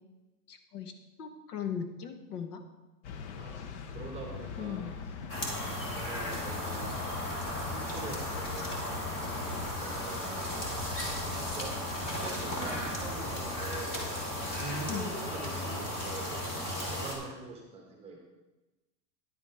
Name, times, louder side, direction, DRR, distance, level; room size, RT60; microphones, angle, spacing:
voice 1, 0.5-0.9 1.2-2.6 4.6-4.9 14.9-15.1, left 8 dB, 65° left, 7 dB, 1.3 m, -38 dB
sound 1, 3.0-9.7, left 6 dB, 45° left, 0.7 m, -42 dB
voice 2, 3.3-4.9 5.6-7.1 7.5-10.4 11.3-11.8 12.1-14.0 14.6-16.5 16.8-18.2, right 3 dB, 10° right, 1 dB, 1.0 m, -44 dB
sound 2, 5.3-17.1, left 1 dB, 25° left, 1.7 m, -35 dB
10.0 x 7.3 x 4.8 m, 1.1 s
supercardioid pair, 170°, 50 cm